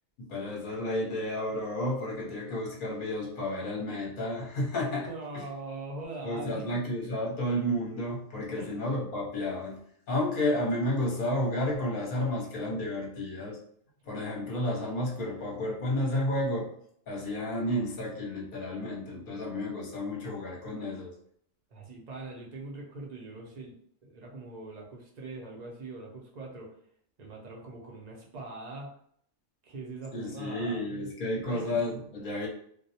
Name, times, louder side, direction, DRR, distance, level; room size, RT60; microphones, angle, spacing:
voice 1, 0.2-5.5 6.2-13.6 14.0-16.7 17.1-21.1 30.1-32.5, left 1 dB, 50° left, -3 dB, 0.8 m, -31 dB
voice 2, 5.1-6.6 8.6-8.7 21.7-23.7 24.0-26.7 27.2-28.9 29.6-30.8 31.4-31.8, right 2 dB, 50° right, -1 dB, 0.5 m, -42 dB
2.3 x 2.0 x 2.7 m, 0.65 s
omnidirectional pair, 1.2 m